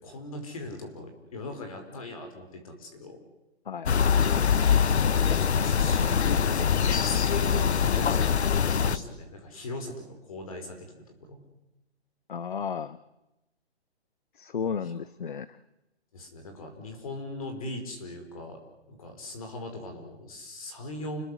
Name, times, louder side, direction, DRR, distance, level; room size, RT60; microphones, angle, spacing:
voice 1, 0.0-3.2 5.0-8.3 8.7-11.4 14.8-14.9 16.1-18.6 18.9-21.2, left 2 dB, 30° left, 4 dB, 5.3 m, -39 dB
sound 1, 3.9-9.0, left 7 dB, 75° left, 1.1 m, -23 dB
voice 2, 12.3-13.0 14.4-15.6, left 6 dB, 50° left, 17 dB, 0.9 m, -33 dB
29.5 x 20.0 x 8.2 m, 0.96 s
hypercardioid pair, 180°, 33 cm